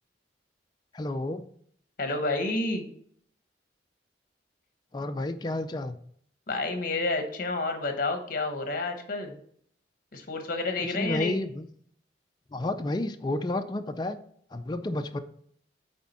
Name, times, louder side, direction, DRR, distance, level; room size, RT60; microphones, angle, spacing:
voice 1, 0.9-1.4 4.9-6.0 10.8-11.7 12.5-14.2 14.5-15.2, left 1 dB, 25° left, 7 dB, 0.4 m, -31 dB
voice 2, 2.0-2.9 6.5-9.4 10.1-11.4, left 2 dB, 50° left, 6 dB, 1.1 m, -30 dB
8.6 x 3.5 x 4.2 m, 0.63 s
head